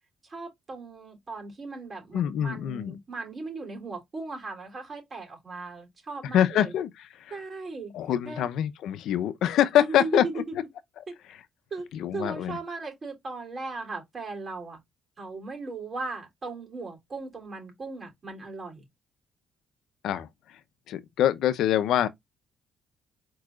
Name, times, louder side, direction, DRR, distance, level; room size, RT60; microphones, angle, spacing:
voice 1, 0.2-6.7 7.3-7.9 8.2-8.5 9.8-10.5 11.1-11.2 11.7-11.9 12.1-14.8 15.2-18.8, right 3 dB, 40° right, 3.4 m, -37 dB
voice 2, 2.1-3.0 6.3-7.4 7.9-10.6 11.9-12.6 20.0-20.3 20.9-22.1, left 11 dB, 80° left, 0.6 m, -25 dB
4.7 x 4.6 x 2.4 m
cardioid pair, 90°, 0 cm